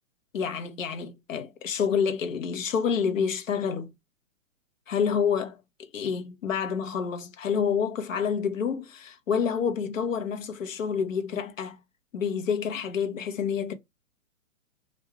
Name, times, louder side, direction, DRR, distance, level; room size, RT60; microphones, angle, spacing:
voice 1, 0.3-3.9 4.9-11.8 12.1-13.7, left 6 dB, 70° left, 1.1 m, -28 dB
2.7 x 2.3 x 3.0 m
hypercardioid pair, 160°, 40 cm